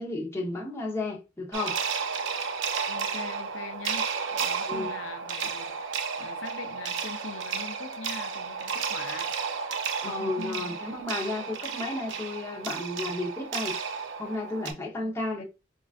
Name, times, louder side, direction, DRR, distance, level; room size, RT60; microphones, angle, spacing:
voice 1, 0.0-1.8 4.7-4.9 10.0-13.8 14.2-15.4, left 2 dB, 15° left, 0.8 m, -33 dB
sound 1, 1.5-14.7, right 6 dB, 75° right, 0.5 m, -32 dB
voice 2, 2.9-9.4 10.0-10.8 15.0-15.4, left 5 dB, 80° left, 0.5 m, -42 dB
4.4 x 2.4 x 2.4 m
head